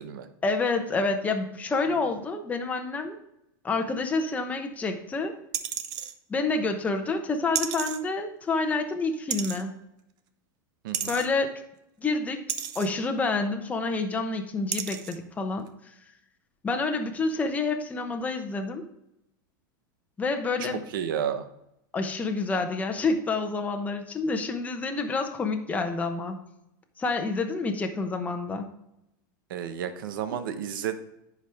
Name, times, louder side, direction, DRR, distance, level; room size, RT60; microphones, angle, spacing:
voice 1, 0.4-3.2 3.6-5.3 6.3-9.8 11.1-11.5 12.0-12.4 12.7-15.7 16.6-18.8 20.2-20.8 21.9-26.4 27.0-28.7, left 3 dB, 15° left, 4 dB, 0.9 m, -28 dB
sound 1, 5.5-6.1 7.6-8.0 9.3-9.6 10.9-11.3 12.5-12.9 13.9-14.0 14.7-15.2 15.7-15.8, right 10 dB, 40° right, 0.7 m, -31 dB
voice 2, 20.6-21.5 29.5-31.0, right 9 dB, 75° right, 10 dB, 0.9 m, -32 dB
10.0 x 4.9 x 3.5 m, 0.82 s
supercardioid pair, 140°, 11 cm